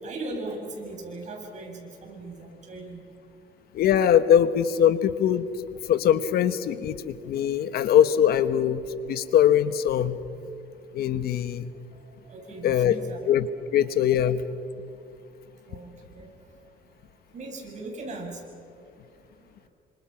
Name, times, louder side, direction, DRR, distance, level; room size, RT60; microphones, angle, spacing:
voice 1, 0.0-3.1 11.9-13.2 15.7-16.3 17.3-18.4, right 2 dB, 45° right, 1 dB, 7.7 m, -39 dB
voice 2, 3.7-5.5 5.9-10.2 10.9-11.6 12.6-13.0 13.3-13.5 13.7-14.4, left 9 dB, 65° left, 12 dB, 1.3 m, -22 dB
30.0 x 26.0 x 5.9 m, 2.6 s
cardioid pair, 110°, 17 cm